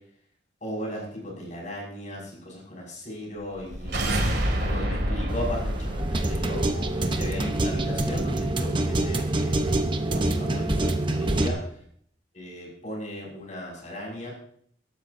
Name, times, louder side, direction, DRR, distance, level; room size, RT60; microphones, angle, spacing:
voice 1, 0.6-4.1 4.6-11.6 12.3-14.3, left 1 dB, 45° left, -3 dB, 6.2 m, -37 dB
Slow Motion Gun Shot, 3.5-8.6, right 1 dB, 60° right, 2.7 m, -29 dB
sound 1, 5.3-11.5, right 1 dB, 30° right, 1.0 m, -26 dB
23.5 x 12.5 x 2.8 m, 0.65 s
head